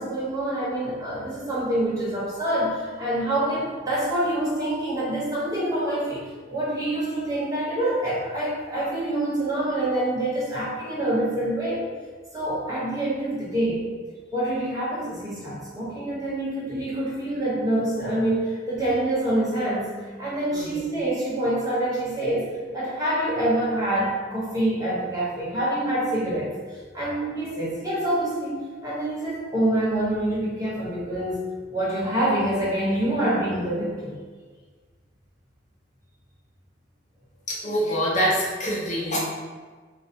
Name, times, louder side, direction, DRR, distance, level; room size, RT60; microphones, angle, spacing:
voice 1, 0.0-11.8 12.3-13.9 14.3-31.4 31.7-34.1, right 1 dB, 20° right, -7 dB, 1.2 m, -26 dB
voice 2, 20.5-20.8 37.5-39.2, equal, 40° left, -4 dB, 0.7 m, -25 dB
3.9 x 2.3 x 4.3 m, 1.5 s
head